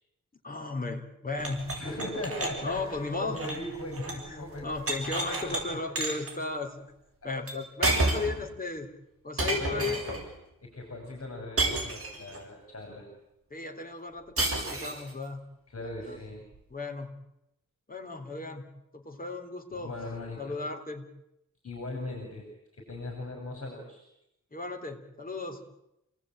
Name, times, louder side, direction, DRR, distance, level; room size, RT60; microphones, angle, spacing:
voice 1, 0.4-1.7 2.6-3.6 4.1-6.9 7.2-8.9 9.2-10.2 13.5-15.4 15.8-16.2 16.7-17.1 17.9-18.7 18.9-19.9 20.4-21.1 24.5-25.6, left 3 dB, 25° left, 4 dB, 3.5 m, -35 dB
sound 1, 1.4-4.3 4.6-5.6 6.0-6.3 7.5-7.6 7.8-8.4 9.4-10.2 11.6-12.4 14.4-15.1, right 2 dB, 45° right, 7.0 m, -30 dB
voice 2, 1.7-4.7 5.5-5.6 8.2-8.3 9.6-10.2 10.6-13.1 15.7-16.4 19.7-20.6 21.6-22.5 22.7-24.1, left 1 dB, 45° left, 1 dB, 6.3 m, -39 dB
28.5 x 19.0 x 9.1 m, 0.86 s
wide cardioid pair, 135°, 33 cm